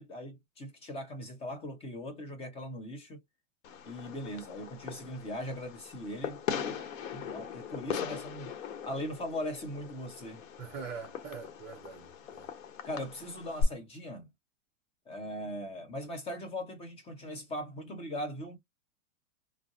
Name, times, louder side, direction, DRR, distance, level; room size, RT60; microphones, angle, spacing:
voice 1, 0.0-3.2 3.8-6.8 7.1-8.6 8.8-10.4 12.8-14.3 15.1-18.6, left 1 dB, 15° left, 0.8 m, -40 dB
Fireworks, 3.6-13.6, left 7 dB, 70° left, 1.0 m, -40 dB
voice 2, 10.6-12.5, right 5 dB, 20° right, 0.4 m, -43 dB
2.6 x 2.0 x 3.8 m
supercardioid pair, 145°, 41 cm